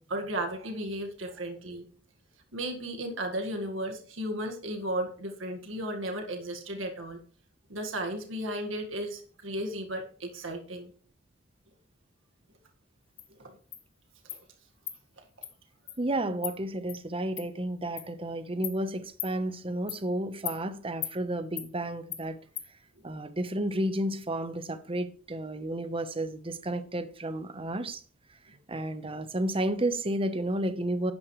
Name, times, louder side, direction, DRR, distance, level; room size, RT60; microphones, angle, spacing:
voice 1, 0.0-1.8 2.5-7.2 7.7-10.9 13.3-13.6 14.3-14.4 23.0-23.1 28.5-28.6, right 1 dB, 80° right, 1.8 m, -35 dB
Insect, 13.2-13.3 13.7-13.8 14.3-14.4 14.9-15.0 15.4-15.5 15.9-16.0 16.4-16.5 16.9-17.0 17.4-17.5 18.0-18.1 18.6-18.8 19.2-19.3 19.9-20.0 20.5-20.6 21.0-21.2 21.6-21.7 22.1-22.2 22.6-22.7, left 12 dB, 85° left, 1.4 m, -37 dB
voice 2, 16.0-22.4 23.0-28.0 28.7-31.1, right 1 dB, 30° right, 1.0 m, -32 dB
11.5 x 9.5 x 3.2 m
head